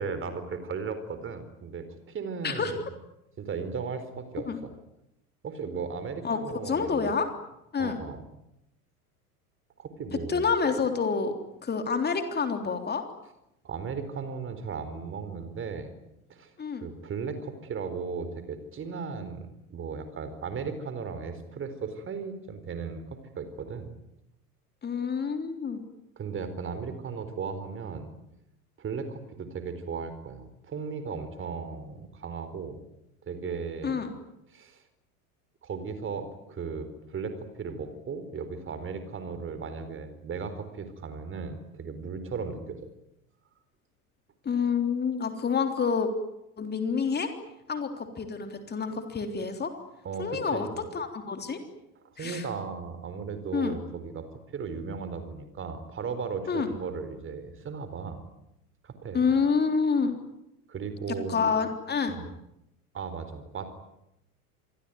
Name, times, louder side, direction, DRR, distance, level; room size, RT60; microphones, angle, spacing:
voice 1, 0.0-2.8 3.4-4.7 5.4-7.1 7.8-8.2 9.8-10.4 13.6-15.9 16.3-16.5 16.8-23.0 23.4-23.9 26.2-28.1 28.8-32.8 33.3-34.0 34.5-34.8 35.6-42.8 50.0-50.8 52.0-54.3 54.5-58.2 58.8-59.2 60.7-61.5 62.1-62.2 62.9-63.8, right 5 dB, 25° right, 10 dB, 4.4 m, -36 dB
voice 2, 6.7-7.3 7.7-8.0 10.3-11.3 11.6-13.0 16.6-16.9 24.8-25.8 33.8-34.1 44.4-46.1 46.6-47.3 47.7-49.7 50.2-51.6 52.2-52.5 53.5-53.7 56.5-56.7 59.1-60.1 61.3-62.2, left 5 dB, 20° left, 6 dB, 3.5 m, -28 dB
27.0 x 22.0 x 9.5 m, 0.85 s
figure-of-eight pair, 80°, 45 cm